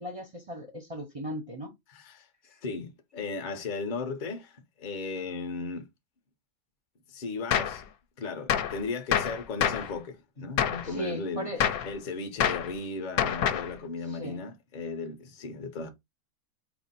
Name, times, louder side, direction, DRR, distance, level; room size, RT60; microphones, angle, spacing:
voice 1, 0.0-1.7 10.8-11.7 14.1-14.4, equal, 35° right, 0.6 m, -37 dB
voice 2, 1.9-5.9 7.1-7.9 8.2-11.5 11.8-15.9, left 4 dB, 45° left, 0.6 m, -36 dB
Gunshot gunfire, 7.5-7.8 8.5-8.8 9.1-9.9 10.6-10.9 11.6-11.9 12.4-12.7 13.2-13.7, left 9 dB, 75° left, 1.0 m, -27 dB
4.4 x 2.0 x 4.1 m
omnidirectional pair, 1.7 m